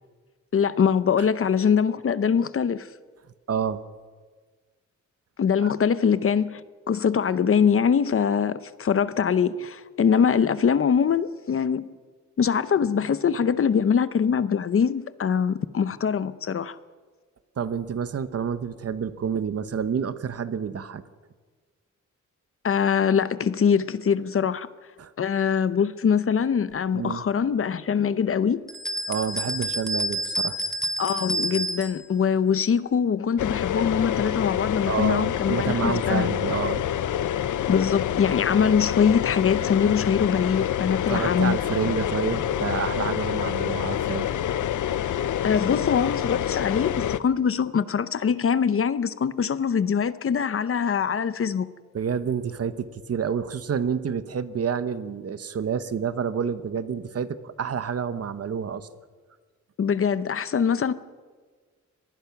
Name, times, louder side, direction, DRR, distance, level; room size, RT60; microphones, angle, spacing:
voice 1, 0.5-2.9 5.4-6.6 6.9-11.9 12.4-16.8 22.6-24.7 25.2-28.6 31.0-36.3 37.7-41.6 45.4-51.7 59.8-60.9, left 7 dB, 45° left, 0.7 m, -23 dB
voice 2, 3.5-3.8 5.6-5.7 17.6-21.0 25.0-25.1 26.9-27.2 29.1-30.6 34.9-36.8 41.1-44.3 51.9-58.9, right 7 dB, 55° right, 0.9 m, -28 dB
sound 1, 28.7-32.0, right 1 dB, ahead, 1.7 m, -29 dB
sound 2, 33.4-47.2, left 10 dB, 85° left, 0.7 m, -27 dB
24.5 x 19.5 x 5.9 m
wide cardioid pair, 175°, 30 cm